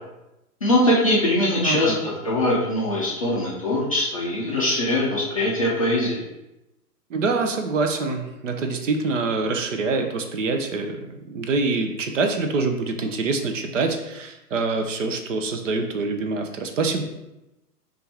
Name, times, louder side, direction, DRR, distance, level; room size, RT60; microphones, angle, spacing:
voice 1, 0.6-6.2, left 1 dB, 25° left, -6 dB, 0.4 m, -22 dB
voice 2, 1.6-2.0 7.1-17.0, right 3 dB, 50° right, 5 dB, 0.7 m, -25 dB
5.6 x 2.6 x 3.3 m, 0.94 s
hypercardioid pair, 140°, 48 cm